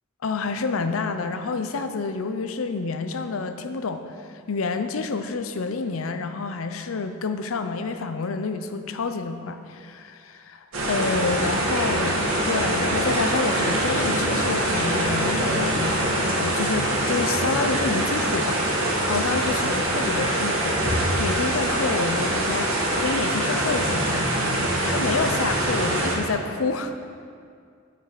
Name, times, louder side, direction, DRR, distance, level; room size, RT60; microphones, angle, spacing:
voice 1, 0.2-22.7 23.0-27.1, left 4 dB, 80° left, 9 dB, 0.6 m, -28 dB
sound 1, 10.7-26.1, right 1 dB, 90° right, 2.0 m, -24 dB
8.2 x 7.4 x 4.9 m, 2.3 s
head